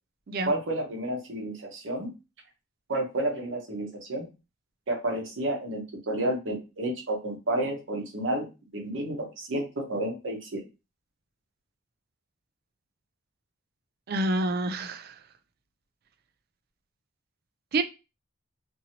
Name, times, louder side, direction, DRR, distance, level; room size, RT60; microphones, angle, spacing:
voice 1, 0.4-2.1 2.9-4.3 4.9-8.5 8.7-10.6, right 1 dB, 65° right, 2 dB, 0.9 m, -30 dB
voice 2, 14.1-15.1 17.7-17.8, right 2 dB, 50° right, 10 dB, 0.3 m, -27 dB
2.8 x 2.7 x 2.8 m, 0.29 s
head